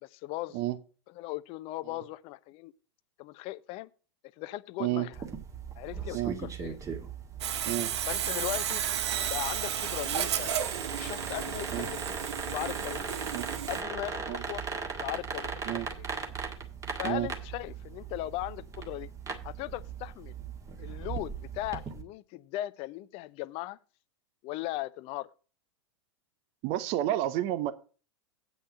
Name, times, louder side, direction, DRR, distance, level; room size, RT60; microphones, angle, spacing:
voice 1, 0.0-0.6 1.2-2.7 3.2-3.9 4.4-5.1 5.8-6.8 8.0-8.8 9.3-10.6 10.9-12.0 12.5-13.3 13.7-14.6 14.9-16.0 17.0-19.1 19.4-20.3 20.8-23.8 24.4-25.3, left 17 dB, 40° left, 0.7 m, -38 dB
sound 1, 5.1-22.0, right 5 dB, 20° right, 1.8 m, -39 dB
Sawing, 7.4-13.8, right 9 dB, 70° right, 1.0 m, -33 dB
voice 2, 26.6-27.7, right 14 dB, 45° right, 0.8 m, -30 dB
8.5 x 5.5 x 7.0 m
hypercardioid pair, 105°, 15 cm